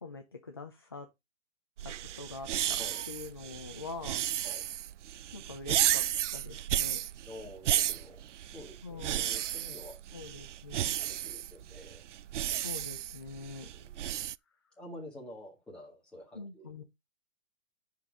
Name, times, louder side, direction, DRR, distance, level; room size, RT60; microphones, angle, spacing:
voice 1, 0.0-1.1 1.8-2.8 3.1-4.8 5.3-6.1 6.3-7.1 8.8-9.4 10.1-11.0 12.6-13.7 16.3-16.8, left 4 dB, 20° left, 0.5 m, -45 dB
sound 1, 1.8-14.4, right 11 dB, 70° right, 0.5 m, -33 dB
voice 2, 7.2-10.0 10.7-12.0 13.7-14.2 14.8-16.7, left 1 dB, ahead, 1.8 m, -49 dB
10.5 x 4.3 x 5.0 m
hypercardioid pair, 175°, 38 cm